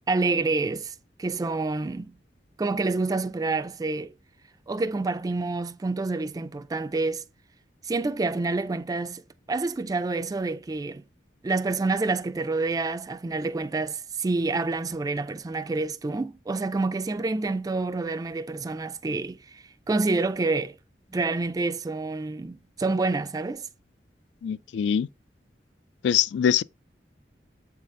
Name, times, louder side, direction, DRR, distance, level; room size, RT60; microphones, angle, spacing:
voice 1, 0.1-2.1 2.6-4.1 4.7-7.2 7.8-9.2 9.5-11.0 11.4-20.8 21.1-23.7, right 3 dB, 20° right, 0.3 m, -28 dB
voice 2, 24.4-25.1 26.0-26.6, left 8 dB, 75° left, 0.3 m, -23 dB
7.4 x 4.1 x 3.7 m
head